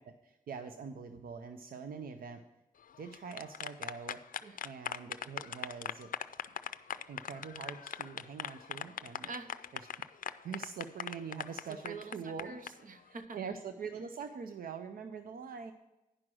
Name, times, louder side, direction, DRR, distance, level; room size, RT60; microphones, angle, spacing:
voice 1, 0.0-2.4 3.0-4.2 4.6-6.1 7.1-9.3 9.7-9.9 10.2-12.5 13.3-15.7, right 6 dB, 90° right, 8 dB, 0.5 m, -44 dB
sound 1, 2.9-12.7, left 8 dB, 70° left, 0.4 m, -40 dB
voice 2, 9.2-9.6 11.7-13.4, right 4 dB, 70° right, 9 dB, 0.8 m, -46 dB
9.9 x 6.1 x 6.1 m, 0.98 s
cardioid pair, 55°, 15 cm